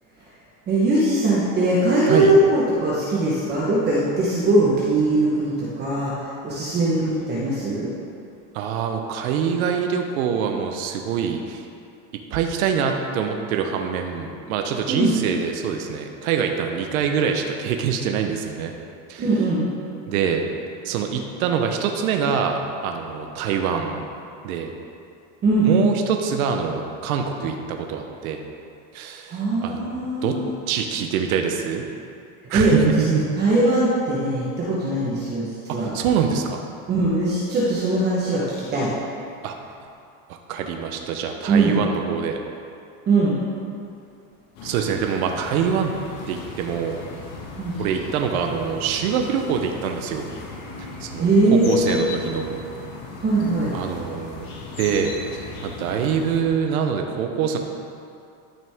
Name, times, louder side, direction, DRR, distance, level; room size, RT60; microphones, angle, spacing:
voice 1, 0.7-7.9 14.9-15.1 19.2-19.6 25.4-25.7 29.3-30.5 32.5-35.9 36.9-38.9 41.5-41.8 43.1-43.4 47.6-47.8 51.2-52.1 53.2-53.7, right 2 dB, 25° right, -7 dB, 1.2 m, -21 dB
voice 2, 8.5-11.7 12.3-18.7 19.1-19.3 20.1-20.4 20.8-24.0 24.4-24.7 25.6-28.4 28.9-30.0 30.2-30.4 30.7-31.8 32.5-33.2 35.7-36.6 39.4-39.5 40.3-42.4 44.6-45.9 46.3-47.0 47.8-50.3 51.0-52.5 53.7-54.4 54.8-57.6, right 7 dB, 85° right, 4 dB, 1.0 m, -25 dB
sound 1, 44.6-56.4, left 3 dB, 50° left, 1.6 m, -37 dB
12.5 x 6.0 x 3.6 m, 2.5 s
supercardioid pair, 155°, 42 cm